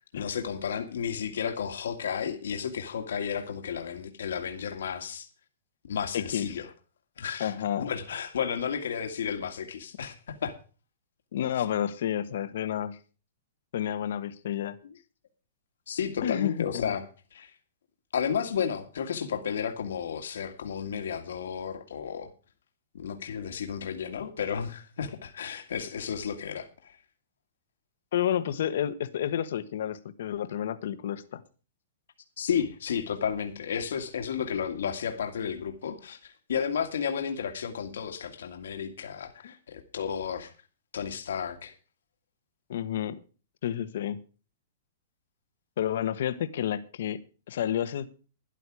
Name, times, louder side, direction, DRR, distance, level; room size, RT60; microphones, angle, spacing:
voice 1, 0.1-5.3 5.9-6.7 7.2-7.5 7.8-10.5 14.8-14.9 15.9-17.5 18.1-22.3 22.9-27.0 32.4-40.5 40.9-41.7, left 7 dB, 85° left, 6 dB, 2.0 m, -32 dB
voice 2, 6.1-6.6 7.4-7.9 11.3-13.0 13.7-14.8 16.2-16.8 28.1-31.4 42.7-43.1 43.6-44.2 45.8-47.2 47.5-48.1, left 10 dB, 65° left, 12 dB, 1.3 m, -30 dB
13.0 x 11.0 x 4.8 m, 0.36 s
hypercardioid pair, 160°, 0 cm